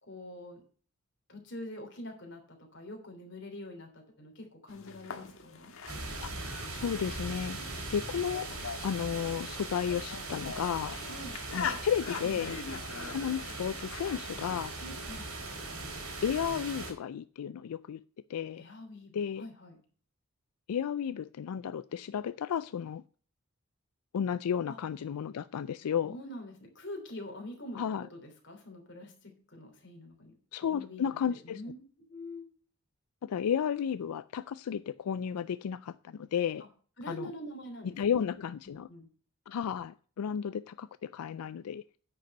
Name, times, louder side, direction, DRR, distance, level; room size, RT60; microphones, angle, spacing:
voice 1, 0.0-0.6 1.3-5.7 11.1-11.3 14.8-15.3 18.5-19.8 24.7-24.8 26.0-27.8 28.1-30.3 30.6-31.1 31.4-31.8 32.1-32.4 37.0-38.2 38.6-39.1, left 1 dB, 50° left, 3.2 m, -45 dB
sound 1, 4.7-14.6, left 5 dB, 65° left, 1.6 m, -43 dB
sound 2, 5.9-16.9, right 3 dB, 80° right, 3.7 m, -40 dB
voice 2, 6.7-7.6 7.9-8.5 8.8-11.0 11.5-12.6 13.1-14.7 16.2-18.0 18.3-18.6 19.1-19.4 20.7-23.0 24.1-26.2 27.8-28.1 30.5-31.6 33.2-36.6 37.1-37.3 37.8-38.9 39.5-41.8, left 8 dB, 85° left, 0.4 m, -33 dB
9.7 x 6.6 x 5.3 m
head